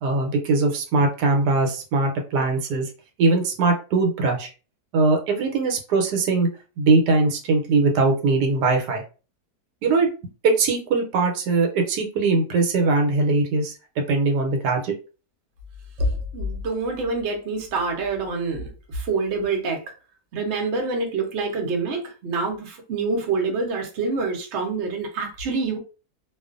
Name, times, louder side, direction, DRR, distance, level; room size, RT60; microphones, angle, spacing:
voice 1, 0.0-2.9 3.2-4.5 4.9-6.5 6.8-9.0 9.8-10.1 10.4-13.7 14.1-14.9, right 3 dB, 85° right, 3 dB, 1.2 m, -21 dB
voice 2, 16.0-19.8 20.3-25.8, right 3 dB, 55° right, 2 dB, 0.8 m, -26 dB
2.5 x 2.4 x 2.4 m, 0.34 s
omnidirectional pair, 1.7 m